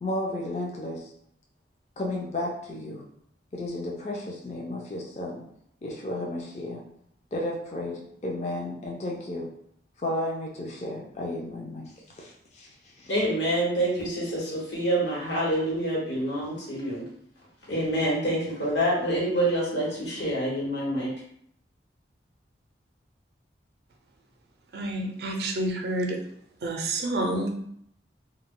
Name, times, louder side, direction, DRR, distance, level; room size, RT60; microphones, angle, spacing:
voice 1, 0.0-1.1 2.0-3.0 3.5-5.4 5.8-6.8 7.3-9.5 10.0-11.9 12.2-12.7 13.0-13.1, left 1 dB, 35° left, -1 dB, 0.4 m, -33 dB
voice 2, 13.1-17.0 17.7-21.1, right 1 dB, 80° left, -5 dB, 1.1 m, -27 dB
voice 3, 24.7-26.2 26.6-27.5, right 1 dB, 60° right, 2 dB, 0.5 m, -29 dB
2.3 x 2.1 x 3.6 m, 0.70 s
head